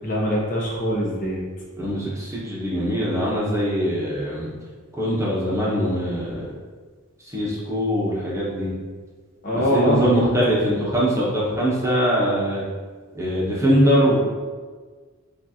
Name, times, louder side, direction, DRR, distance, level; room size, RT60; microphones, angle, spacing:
voice 1, 0.0-1.4 9.4-10.3, equal, 40° left, -4 dB, 0.9 m, -23 dB
voice 2, 1.8-4.5 4.9-6.5 7.3-8.7 9.7-12.6 13.1-14.2, equal, 15° right, -6 dB, 1.0 m, -22 dB
7.1 x 2.5 x 2.9 m, 1.5 s
head